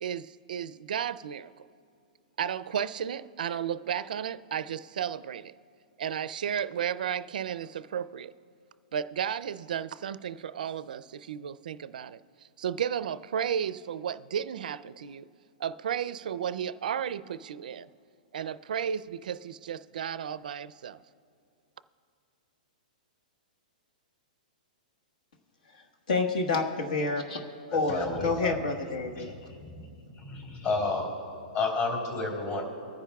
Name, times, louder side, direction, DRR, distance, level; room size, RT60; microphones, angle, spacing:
voice 1, 0.0-1.5 2.4-5.5 6.0-8.3 8.9-12.2 12.6-15.3 15.6-17.9 18.3-21.0, right 8 dB, 70° right, 16 dB, 0.4 m, -33 dB
voice 2, 26.1-27.4 27.7-29.3, left 3 dB, 65° left, 3 dB, 1.3 m, -28 dB
voice 3, 27.7-28.6 29.2-29.3 29.6-29.9 30.2-31.1 31.5-32.6, left 3 dB, 30° left, -1 dB, 3.3 m, -31 dB
24.0 x 9.9 x 2.3 m, 2.4 s
hypercardioid pair, 170°, 5 cm